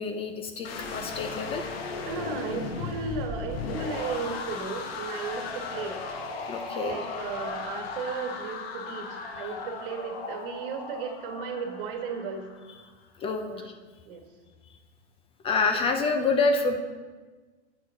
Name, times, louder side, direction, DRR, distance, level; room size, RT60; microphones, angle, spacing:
voice 1, 0.0-1.7 6.5-7.0 13.2-13.7 15.4-16.8, left 3 dB, 15° left, 6 dB, 0.4 m, -27 dB
sound 1, 0.6-12.7, left 4 dB, 60° left, 1.1 m, -36 dB
voice 2, 2.0-6.0 6.7-12.5 13.4-13.7 14.0-14.2, right 5 dB, 50° right, 4 dB, 1.4 m, -35 dB
8.8 x 5.9 x 3.7 m, 1.4 s
hypercardioid pair, 125°, 34 cm